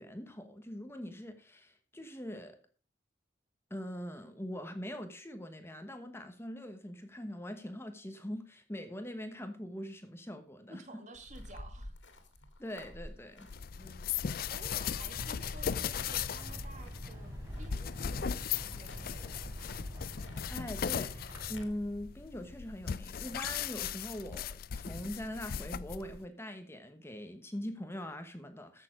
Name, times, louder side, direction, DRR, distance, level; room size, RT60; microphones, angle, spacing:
voice 1, 0.0-2.6 3.7-10.8 12.6-13.5 20.3-28.8, equal, 15° left, 1.1 m, -42 dB
voice 2, 10.7-11.9 13.8-14.1 14.5-19.8, right 1 dB, 40° right, 2.1 m, -53 dB
sound 1, 11.1-21.7, left 1 dB, 70° left, 2.4 m, -50 dB
Rustling styrofoam, 13.5-26.2, left 8 dB, 50° left, 0.4 m, -38 dB
sound 2, 15.0-21.7, equal, 15° right, 5.5 m, -46 dB
14.0 x 6.7 x 5.0 m
head